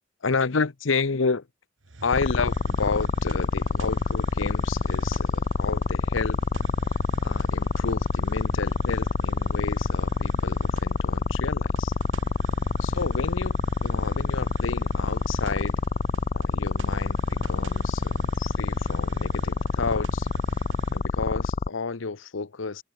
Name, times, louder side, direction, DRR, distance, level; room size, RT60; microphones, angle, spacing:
voice 1, 0.2-1.4 2.0-6.4 7.2-11.9 12.8-15.8 16.3-20.3 20.9-22.8, left 4 dB, 85° left, 0.9 m, -31 dB
Hiss, 1.8-21.1, right 2 dB, 80° right, 1.6 m, -42 dB
sound 1, 2.1-21.7, left 4 dB, 35° left, 0.4 m, -26 dB
head